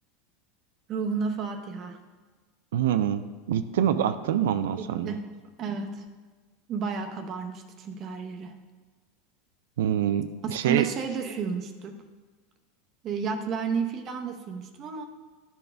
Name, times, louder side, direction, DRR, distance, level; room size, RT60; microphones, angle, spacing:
voice 1, 0.9-2.0 4.8-6.1 6.7-8.6 10.4-12.0 13.0-15.1, right 5 dB, 40° right, 5 dB, 0.8 m, -32 dB
voice 2, 2.7-5.1 9.8-10.9, right 10 dB, 85° right, 10 dB, 0.3 m, -26 dB
12.0 x 4.3 x 3.3 m, 1.3 s
supercardioid pair, 130°, 0 cm